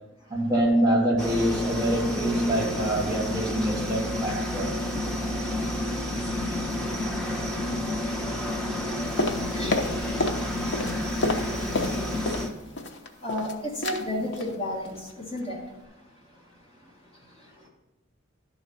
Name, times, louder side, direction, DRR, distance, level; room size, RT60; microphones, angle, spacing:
voice 1, 0.3-4.9, right 1 dB, 20° right, -1 dB, 1.6 m, -25 dB
sound 1, 1.2-12.5, left 1 dB, 5° left, 1.0 m, -30 dB
voice 2, 4.9-17.7, left 1 dB, 30° left, -2 dB, 1.6 m, -38 dB
sound 2, 9.2-10.4 10.7-12.5 12.8-13.5 13.8-14.0 14.3-14.5 14.9-15.1 15.4-15.5, left 2 dB, 60° left, 0.8 m, -29 dB
12.0 x 4.0 x 5.6 m, 1.0 s
head